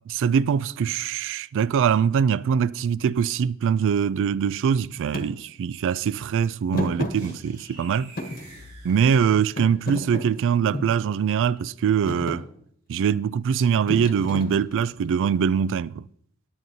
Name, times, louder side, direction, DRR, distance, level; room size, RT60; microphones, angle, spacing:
voice 1, 0.1-8.1 8.8-12.5 12.9-16.1, right 7 dB, 60° right, 0.3 m, -23 dB
Thump thud, 5.1-5.3 6.7-7.8 8.2-9.2 9.6-11.0 11.6-11.8 12.1-12.4 13.9-15.0, left 1 dB, 40° left, 1.3 m, -32 dB
sound 1, 7.1-10.0, right 2 dB, 85° right, 3.2 m, -48 dB
17.5 x 9.1 x 2.7 m
head